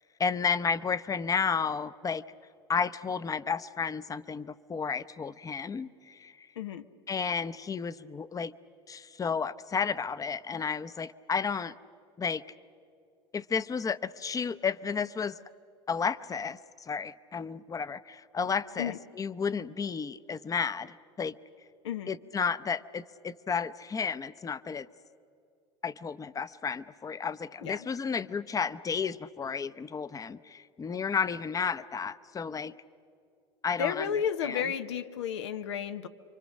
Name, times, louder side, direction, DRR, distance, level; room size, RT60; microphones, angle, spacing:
voice 1, 0.2-2.2 2.7-6.5 7.1-8.5 8.9-11.7 12.2-12.4 13.3-15.4 15.9-21.3 22.1-24.9 25.8-32.7 33.6-34.6, left 6 dB, 25° left, 15 dB, 0.7 m, -32 dB
voice 2, 21.8-22.2 27.6-27.9 33.8-36.1, left 8 dB, 90° left, 9 dB, 1.0 m, -32 dB
27.5 x 24.5 x 6.5 m, 2.5 s
hypercardioid pair, 85°, 14 cm